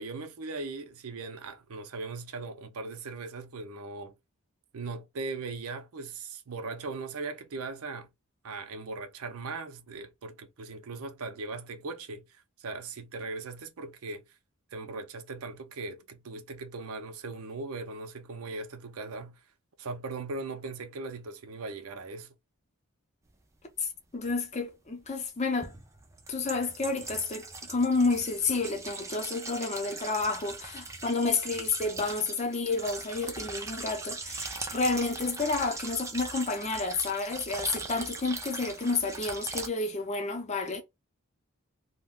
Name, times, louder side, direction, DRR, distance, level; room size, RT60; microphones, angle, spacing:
voice 1, 0.0-4.1 4.7-8.1 8.4-14.2 14.7-19.4 19.8-22.3, right 3 dB, 80° right, 0.5 m, -39 dB
voice 2, 23.8-25.7 26.3-40.8, left 3 dB, 30° left, 0.6 m, -30 dB
sound 1, 24.3-24.4 25.6-39.7, right 3 dB, 15° right, 0.3 m, -40 dB
2.3 x 2.1 x 3.5 m
head